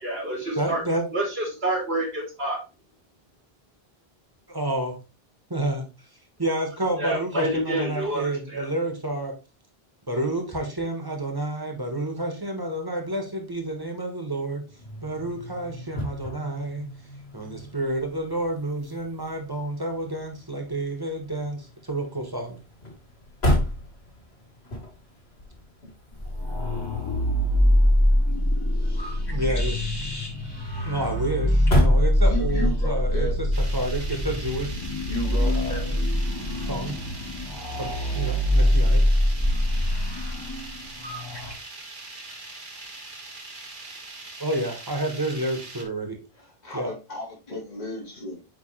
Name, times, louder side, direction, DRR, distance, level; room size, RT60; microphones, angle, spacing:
voice 1, 0.0-0.8 1.1-2.6 7.0-8.7, right 1 dB, 75° right, -1 dB, 2.8 m, -28 dB
voice 2, 0.6-1.1 4.5-5.0 5.5-5.9 6.4-9.3 10.1-14.6 15.0-16.8 17.3-22.6 29.3-29.9 30.8-33.5 33.7-34.9 35.4-35.8 36.6-36.9 37.8-39.0 44.4-46.2 46.7-46.9, right 1 dB, 20° right, 2 dB, 1.5 m, -29 dB
sound 1, 14.7-32.8, left 1 dB, 85° left, 2.0 m, -33 dB
sound 2, 26.1-41.5, left 1 dB, 25° left, 1.6 m, -24 dB
voice 3, 32.2-33.3 35.0-35.8 46.4-48.4, equal, 40° left, -5 dB, 1.9 m, -34 dB
sound 3, 33.5-45.8, right 2 dB, 55° right, 1.3 m, -42 dB
8.9 x 3.3 x 3.2 m, 0.30 s
omnidirectional pair, 1.0 m